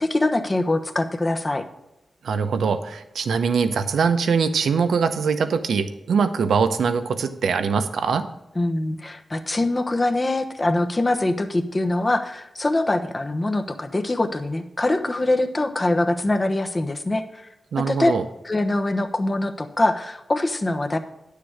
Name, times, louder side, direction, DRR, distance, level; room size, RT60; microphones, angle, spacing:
voice 1, 0.0-1.6 8.5-17.5 17.8-18.1 18.4-21.0, left 2 dB, 30° left, 6 dB, 1.0 m, -23 dB
voice 2, 2.2-8.3 17.7-18.2, right 5 dB, 90° right, 9 dB, 0.8 m, -22 dB
9.7 x 6.7 x 4.9 m, 0.91 s
cardioid pair, 75°, 0 cm